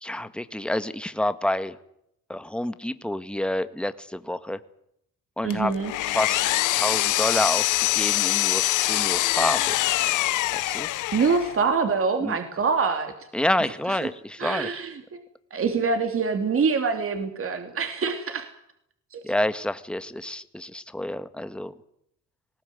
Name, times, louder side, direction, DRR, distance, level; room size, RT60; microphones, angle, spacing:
voice 1, 0.0-1.8 2.3-4.6 5.4-5.7 6.0-6.4 6.7-9.8 10.6-10.9 12.2-12.4 13.3-14.7 19.2-21.7, left 1 dB, 5° left, 11 dB, 1.6 m, -28 dB
voice 2, 5.4-5.9 11.1-13.1 13.9-14.0 14.4-15.0 15.5-18.5 19.1-19.2, right 5 dB, 45° right, 6 dB, 3.1 m, -25 dB
Power tool, 5.5-11.6, left 16 dB, 90° left, 1.0 m, -24 dB
20.5 x 18.5 x 9.3 m, 0.75 s
cardioid pair, 90°, 30 cm